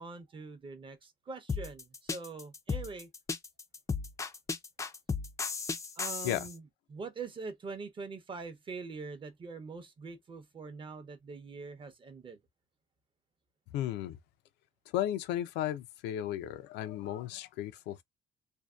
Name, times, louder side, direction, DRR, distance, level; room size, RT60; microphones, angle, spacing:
voice 1, 0.0-3.1 6.0-12.4, right 4 dB, 30° right, 0.6 m, -43 dB
sound 1, 1.5-6.5, left 5 dB, 20° left, 0.3 m, -35 dB
voice 2, 13.7-14.2 14.9-18.0, left 12 dB, 90° left, 0.4 m, -34 dB
2.6 x 2.1 x 2.3 m
cardioid pair, 110°, 17 cm